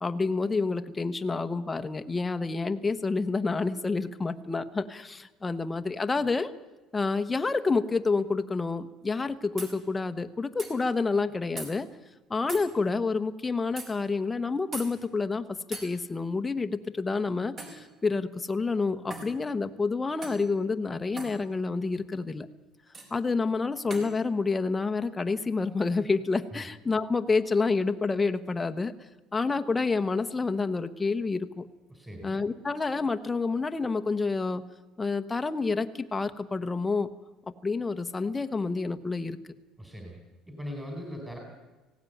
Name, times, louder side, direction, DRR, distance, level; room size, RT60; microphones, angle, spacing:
voice 1, 0.0-6.5 6.9-11.9 12.3-22.5 23.1-28.9 29.3-31.7 32.2-34.6 35.0-37.1 37.6-39.4, left 4 dB, 15° left, 8 dB, 1.0 m, -28 dB
sound 1, 9.6-9.7 10.6-10.7 11.6-11.7 12.5-12.7 13.8-13.9 14.7-14.9 15.7-15.9 17.6-17.8 19.1-19.3 20.2-20.4 21.2-21.4 22.9-23.1 23.9-24.1, right 2 dB, 35° right, 4.8 m, -39 dB
voice 2, 31.9-32.3 39.8-40.2 40.5-41.4, equal, 10° right, 1 dB, 4.3 m, -39 dB
18.5 x 17.0 x 9.3 m, 1.1 s
cardioid pair, 125°, 0 cm